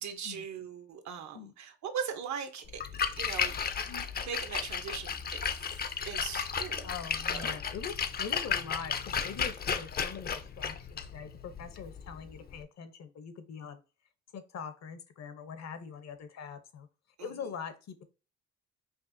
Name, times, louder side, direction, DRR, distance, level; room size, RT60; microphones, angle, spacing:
voice 1, 0.0-2.8 3.1-3.6 4.2-6.9 7.3-7.6 17.2-17.3, right 7 dB, 65° right, 8 dB, 0.8 m, -40 dB
Splash splatter, 2.7-12.6, left 7 dB, 30° left, 0.4 m, -34 dB
voice 2, 6.8-13.8 14.3-16.9 17.2-18.0, left 6 dB, 60° left, 10 dB, 0.8 m, -43 dB
5.2 x 2.5 x 2.6 m, 0.32 s
cardioid pair, 90°, 30 cm